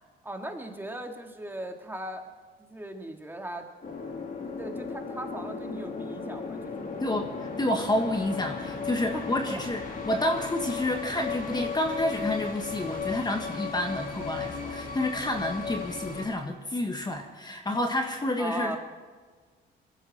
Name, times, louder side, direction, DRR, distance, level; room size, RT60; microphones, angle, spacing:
voice 1, 0.2-2.2 2.6-3.7 4.4-7.0 9.1-9.6 18.4-18.8, right 1 dB, 10° right, 3 dB, 2.4 m, -38 dB
sound 1, 3.8-16.3, left 5 dB, 45° left, 3.4 m, -36 dB
voice 2, 7.0-18.8, left 1 dB, 20° left, 4 dB, 1.8 m, -29 dB
22.0 x 15.5 x 4.4 m, 1.4 s
cardioid pair, 90°, 20 cm